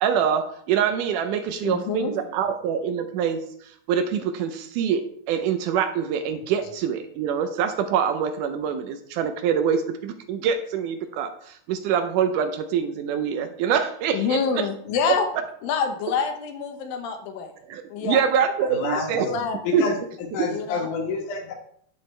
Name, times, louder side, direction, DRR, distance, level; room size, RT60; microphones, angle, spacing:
voice 1, 0.0-14.7 17.7-19.3 19.7-19.9, right 7 dB, 80° right, 8 dB, 2.0 m, -25 dB
voice 2, 1.6-2.1 14.1-15.3 15.6-17.5 17.9-18.3 18.6-18.7 19.2-19.8 20.5-20.9, left 6 dB, 85° left, 5 dB, 2.7 m, -27 dB
voice 3, 18.7-19.9 20.3-21.5, left 4 dB, 70° left, 3 dB, 2.7 m, -28 dB
9.7 x 7.8 x 3.2 m, 0.67 s
omnidirectional pair, 4.0 m